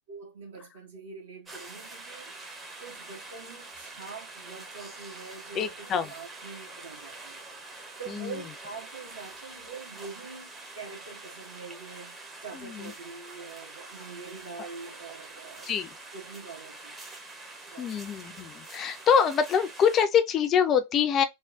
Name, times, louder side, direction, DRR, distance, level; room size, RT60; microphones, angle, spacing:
voice 1, 0.1-2.3 2.8-7.4 8.0-12.2 12.4-15.7 16.1-16.9 17.7-17.9, right 4 dB, 60° right, 1.2 m, -44 dB
sound 1, 1.5-20.1, right 2 dB, 15° right, 0.8 m, -45 dB
voice 2, 5.6-6.1 8.1-8.4 12.5-12.9 15.7-15.9 17.8-21.2, left 7 dB, 30° left, 0.4 m, -25 dB
3.7 x 2.0 x 2.3 m
figure-of-eight pair, 90°, 0 cm